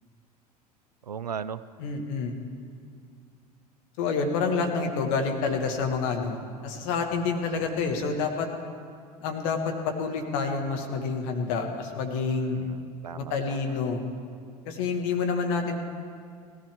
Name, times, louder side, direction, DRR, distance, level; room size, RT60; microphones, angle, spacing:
voice 1, 1.0-1.6 12.5-13.8 15.7-15.8, right 7 dB, 85° right, 16 dB, 0.4 m, -37 dB
voice 2, 1.8-2.3 4.0-8.5 9.2-9.7 10.0-12.6 13.2-14.0 14.6-15.8, left 4 dB, 55° left, 3 dB, 1.6 m, -28 dB
18.5 x 14.5 x 3.5 m, 2.2 s
figure-of-eight pair, 75°, 20 cm